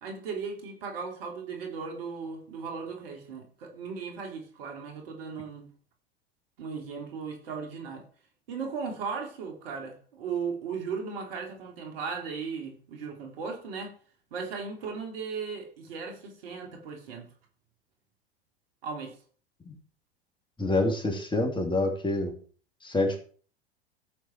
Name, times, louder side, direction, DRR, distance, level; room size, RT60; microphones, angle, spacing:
voice 1, 0.0-5.7 6.6-8.1 8.5-13.9 14.3-17.3 18.8-19.2, right 5 dB, 65° right, 3.4 m, -37 dB
voice 2, 20.6-22.3 22.8-23.2, left 2 dB, 15° left, 3.0 m, -27 dB
14.0 x 8.1 x 4.6 m
hypercardioid pair, 85°, 32 cm